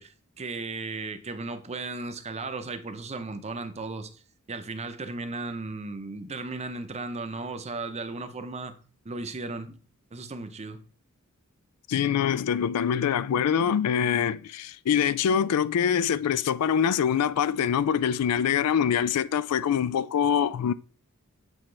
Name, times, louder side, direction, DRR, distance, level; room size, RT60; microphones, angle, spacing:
voice 1, 0.0-4.2 4.5-8.7 9.0-9.8 10.1-10.8, right 3 dB, 30° right, 0.7 m, -35 dB
voice 2, 11.9-20.7, left 8 dB, 85° left, 0.4 m, -24 dB
8.1 x 4.3 x 3.2 m
head